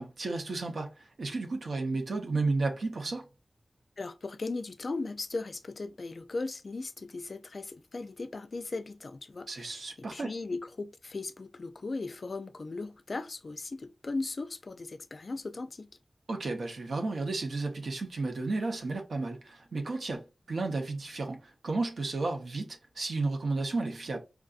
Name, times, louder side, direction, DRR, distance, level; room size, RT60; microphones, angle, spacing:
voice 1, 0.0-3.2 9.5-10.3 16.3-24.2, right 3 dB, 80° right, 0.7 m, -33 dB
voice 2, 4.0-15.9, left 3 dB, 55° left, 0.3 m, -37 dB
4.6 x 2.6 x 2.4 m
wide cardioid pair, 100°, 0 cm